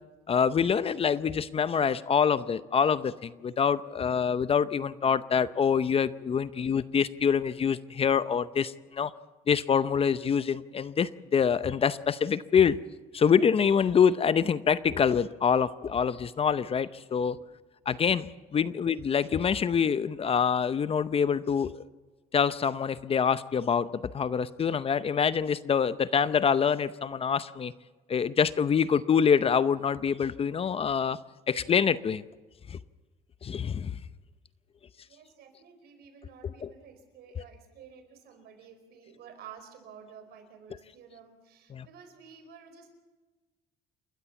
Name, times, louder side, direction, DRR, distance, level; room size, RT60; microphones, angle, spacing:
voice 1, 0.3-9.1 9.5-12.8 13.1-17.4 17.9-18.3 18.5-21.8 22.3-27.7 28.1-31.2 31.5-32.2 32.7-32.8 33.4-34.0 36.4-36.7 41.7-41.9, left 7 dB, 35° left, 15 dB, 0.7 m, -25 dB
voice 2, 35.1-42.9, right 7 dB, 70° right, 6 dB, 4.7 m, -51 dB
29.0 x 13.0 x 7.1 m, 1.3 s
cardioid pair, 110°, 17 cm